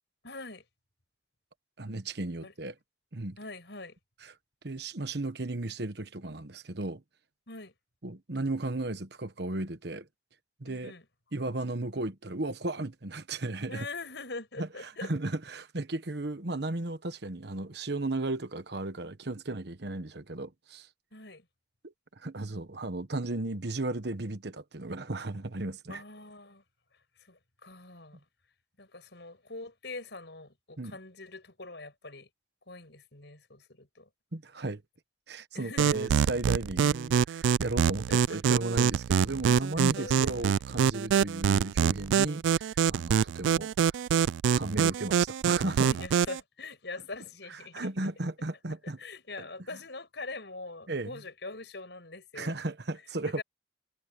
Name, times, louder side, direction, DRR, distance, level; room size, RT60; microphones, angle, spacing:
voice 1, 0.2-0.6 2.4-2.5 3.4-4.0 7.5-7.7 10.7-11.0 13.7-15.1 21.1-21.5 25.9-26.6 27.2-28.2 28.8-32.3 32.7-34.1 35.5-36.1 38.1-38.4 40.0-40.5 45.8-47.9 49.0-52.5 53.4-53.5, left 3 dB, 65° left, 7.2 m, -43 dB
voice 2, 1.8-2.7 3.1-3.4 4.2-4.3 4.6-7.0 8.0-10.1 10.6-10.9 11.3-13.8 14.6-20.9 21.8-26.0 30.8-31.0 34.3-34.8 35.3-43.7 44.5-45.9 47.5-49.0 50.9-51.2 52.3-53.4, right 2 dB, 60° right, 1.2 m, -35 dB
sound 1, 35.8-46.4, right 8 dB, 90° right, 0.3 m, -25 dB
head